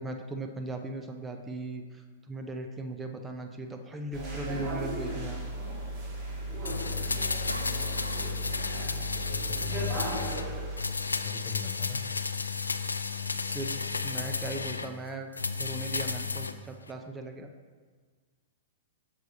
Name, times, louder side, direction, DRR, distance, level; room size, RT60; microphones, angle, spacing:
voice 1, 0.0-2.0 2.3-5.5 13.5-15.3 15.6-17.5, right 2 dB, 15° right, 4 dB, 0.6 m, -38 dB
sound 1, 3.4-3.5 7.5-8.4 8.6-9.0, right 3 dB, 85° right, 0.4 m, -44 dB
sound 2, 4.1-10.8, right 1 dB, 35° right, 1.8 m, -35 dB
voice 2, 6.5-7.1 9.1-10.4 11.0-12.0, left 7 dB, 30° left, 6 dB, 0.6 m, -41 dB
sound 3, 6.6-10.5 10.8-14.9 15.3-16.6 16.9-17.0, left 5 dB, 85° left, 0.3 m, -33 dB
6.3 x 4.7 x 4.1 m, 1.5 s
figure-of-eight pair, 105°, 0 cm